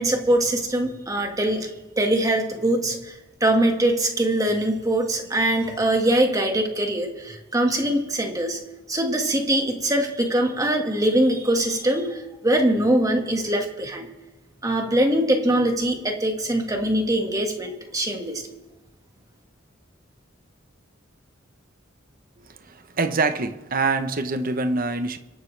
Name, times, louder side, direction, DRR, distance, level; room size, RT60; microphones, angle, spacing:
voice 1, 0.0-1.7 2.0-3.1 3.4-8.6 8.9-14.1 14.6-18.4, right 1 dB, 20° right, 3 dB, 1.8 m, -22 dB
voice 2, 22.6-25.2, right 3 dB, 45° right, 9 dB, 1.0 m, -25 dB
26.5 x 11.0 x 3.4 m, 1.2 s
head